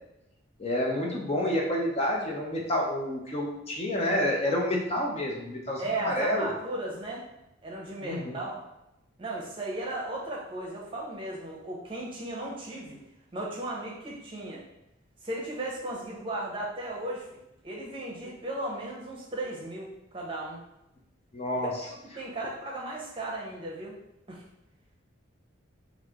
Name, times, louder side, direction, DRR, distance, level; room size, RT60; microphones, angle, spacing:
voice 1, 0.6-6.5 8.0-8.4 21.3-21.7, left 1 dB, 30° left, -1 dB, 0.5 m, -29 dB
voice 2, 5.8-7.2 7.6-8.6 9.2-13.0 13.3-14.6 15.2-20.6 21.6-24.0 24.3-24.4, right 1 dB, 25° right, -3 dB, 0.7 m, -36 dB
3.1 x 2.5 x 3.5 m, 0.89 s
head